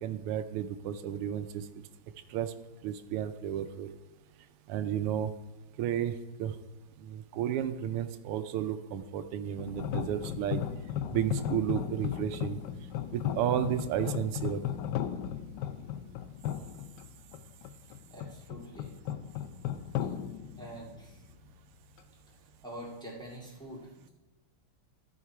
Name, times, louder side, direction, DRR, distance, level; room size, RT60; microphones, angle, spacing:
voice 1, 0.0-1.7 2.3-2.5 2.8-3.9 4.7-5.3 5.8-6.1 6.4-6.5 7.0-10.6 11.1-12.6 13.1-14.6, right 10 dB, 85° right, 10 dB, 1.5 m, -32 dB
sound 1, 9.6-21.5, left 10 dB, 80° left, 1.0 m, -36 dB
voice 2, 18.1-18.9 20.0-20.1 20.6-21.2 22.6-24.1, right 1 dB, ahead, -5 dB, 1.9 m, -45 dB
13.0 x 5.7 x 4.6 m, 1.1 s
omnidirectional pair, 2.4 m